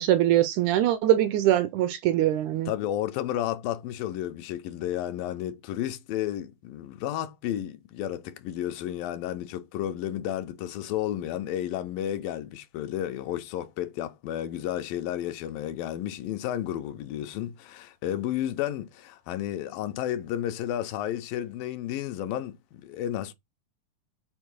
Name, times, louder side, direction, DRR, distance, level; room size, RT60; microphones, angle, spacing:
voice 1, 0.0-2.7, right 12 dB, 80° right, 1.8 m, -22 dB
voice 2, 2.7-23.3, left 12 dB, 85° left, 2.6 m, -32 dB
6.3 x 4.5 x 6.2 m
omnidirectional pair, 3.9 m